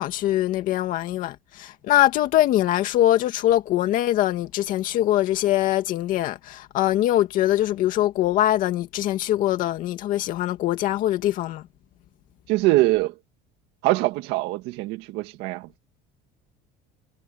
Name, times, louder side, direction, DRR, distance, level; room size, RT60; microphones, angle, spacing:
voice 1, 0.0-11.6, left 13 dB, 45° left, 2.3 m, -22 dB
voice 2, 12.5-13.2 13.8-15.8, right 19 dB, 65° right, 1.9 m, -23 dB
cardioid pair, 175°, 19 cm